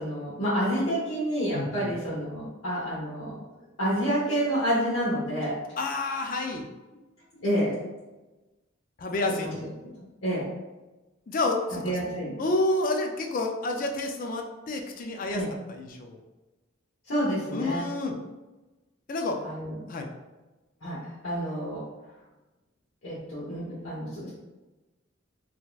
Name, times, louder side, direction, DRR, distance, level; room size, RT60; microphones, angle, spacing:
voice 1, 0.0-3.4 3.8-5.6 7.4-7.8 9.3-9.7 10.0-10.5 11.8-12.4 15.3-15.5 17.1-17.9 19.4-19.8 20.8-21.8 23.0-24.3, equal, 85° left, -9 dB, 1.0 m, -29 dB
voice 2, 1.5-1.9 5.8-6.6 9.0-9.6 11.3-12.0 12.4-15.4 15.7-16.2 17.5-18.1 19.1-19.4 19.9-20.1, left 2 dB, 40° left, 3 dB, 0.4 m, -29 dB
3.8 x 2.8 x 2.3 m, 1.1 s
head